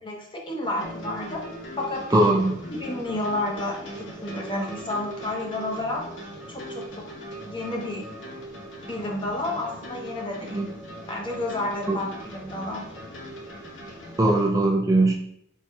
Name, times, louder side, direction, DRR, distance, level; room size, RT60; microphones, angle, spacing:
voice 1, 0.0-1.4 1.8-2.3 2.7-6.1 6.5-7.1 7.4-8.1 8.9-10.6 11.1-12.8, left 2 dB, 25° left, 0 dB, 0.9 m, -31 dB
sound 1, 0.6-14.5, equal, 80° left, 1.1 m, -40 dB
voice 2, 2.1-2.6 10.5-10.7 11.9-12.0 14.2-15.1, right 2 dB, 20° right, 0 dB, 0.4 m, -20 dB
4.6 x 4.0 x 2.8 m, 0.74 s
head